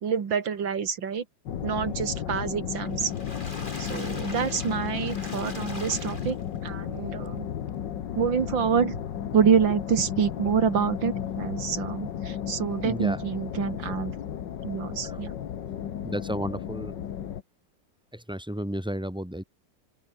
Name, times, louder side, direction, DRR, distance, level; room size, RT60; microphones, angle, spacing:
voice 1, 0.0-1.2 1.6-3.1 3.8-6.4 6.6-7.5 8.2-9.0 9.3-14.1 14.6-15.3, right 6 dB, 85° right, 2.8 m, -27 dB
sound 1, 1.5-17.4, left 9 dB, 75° left, 1.9 m, -34 dB
Water / Splash splatter, 2.9-6.7 7.3-7.4 7.7-7.8, left 2 dB, 25° left, 4.5 m, -42 dB
voice 2, 12.8-13.2 13.9-14.0 15.0-15.2 16.0-17.0 18.1-19.4, equal, ahead, 3.3 m, -33 dB
open air
omnidirectional pair, 2.0 m